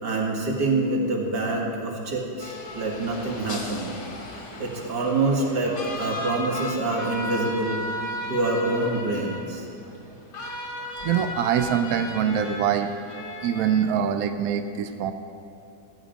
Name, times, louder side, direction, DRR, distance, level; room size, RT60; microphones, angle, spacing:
voice 1, 0.0-4.0 4.3-8.0 8.3-9.7, right 2 dB, 90° right, -1 dB, 2.3 m, -26 dB
sound 1, 2.4-13.8, left 1 dB, 75° left, 2.1 m, -36 dB
voice 2, 11.0-12.9 13.4-15.1, right 8 dB, 70° right, 8 dB, 1.0 m, -24 dB
13.5 x 8.9 x 5.1 m, 2.7 s
omnidirectional pair, 1.8 m